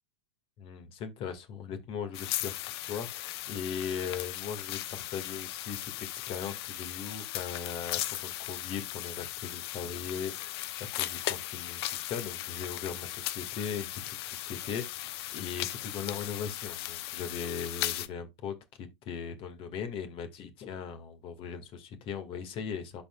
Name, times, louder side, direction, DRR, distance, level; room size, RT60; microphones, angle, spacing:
voice 1, 0.6-2.5 2.8-14.8 15.1-23.0, left 7 dB, 35° left, 2.1 m, -39 dB
sound 1, 2.1-18.1, left 14 dB, 60° left, 0.8 m, -37 dB
12.0 x 4.5 x 2.4 m
hypercardioid pair, 115°, 15 cm